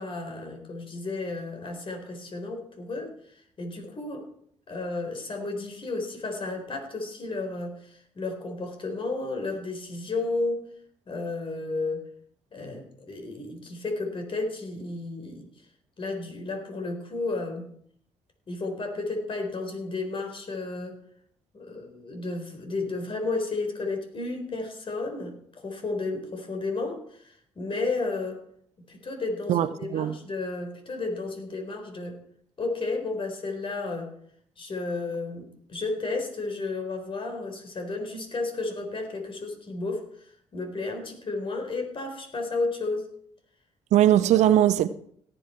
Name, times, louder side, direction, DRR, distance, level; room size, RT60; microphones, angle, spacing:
voice 1, 0.0-3.1 3.6-4.3 4.7-10.7 11.1-12.0 12.5-15.5 16.0-17.7 18.5-21.0 21.5-28.4 28.9-32.2 32.6-34.1 34.6-40.1 40.5-43.1, left 3 dB, 45° left, 4.1 m, -32 dB
voice 2, 29.5-30.1 43.9-44.9, right 11 dB, 70° right, 0.7 m, -20 dB
17.5 x 8.0 x 4.5 m
hypercardioid pair, 50°, 12 cm